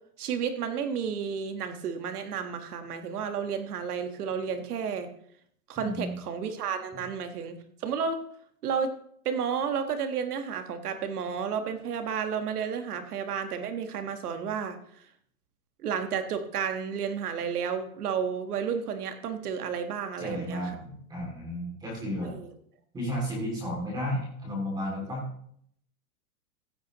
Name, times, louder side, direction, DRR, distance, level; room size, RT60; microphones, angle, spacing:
voice 1, 0.2-5.1 5.7-7.6 7.8-8.2 8.6-8.9 9.2-14.8 15.8-20.7 22.2-22.5, right 7 dB, 80° right, 7 dB, 1.5 m, -31 dB
voice 2, 5.8-6.2 20.2-22.3 22.9-25.3, equal, 10° right, -3 dB, 2.4 m, -33 dB
15.5 x 8.8 x 3.0 m, 0.66 s
supercardioid pair, 180°, 45 cm